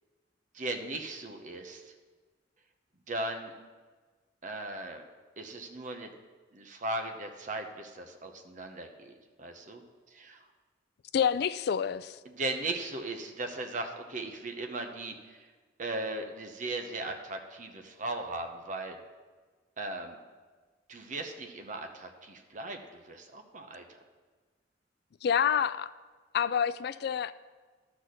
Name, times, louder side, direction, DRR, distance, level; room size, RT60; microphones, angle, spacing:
voice 1, 0.5-1.9 3.1-3.5 4.4-5.0 5.4-6.1 6.5-9.1 9.4-9.8 10.1-10.4 12.2-15.5 15.8-19.0 19.8-20.2 20.9-24.0, right 2 dB, 40° right, 5 dB, 0.8 m, -37 dB
voice 2, 11.1-12.2 25.2-25.9 26.3-27.3, left 8 dB, 55° left, 14 dB, 0.3 m, -28 dB
12.0 x 4.1 x 6.3 m, 1.4 s
head